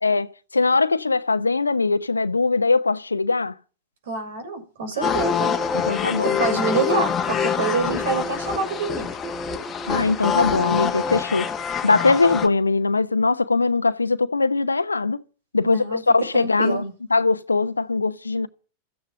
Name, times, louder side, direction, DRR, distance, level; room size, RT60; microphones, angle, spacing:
voice 1, 0.0-3.5 5.0-5.1 5.7-6.4 9.9-11.5 11.8-15.2 15.5-16.8 17.1-18.5, left 3 dB, 80° left, 0.9 m, -21 dB
voice 2, 4.1-5.6 6.2-9.1 15.6-16.0 16.4-16.9, right 3 dB, 60° right, 6.6 m, -26 dB
sound 1, 5.0-12.5, left 6 dB, 20° left, 1.6 m, -25 dB
14.5 x 9.9 x 9.1 m
figure-of-eight pair, 90°, 0 cm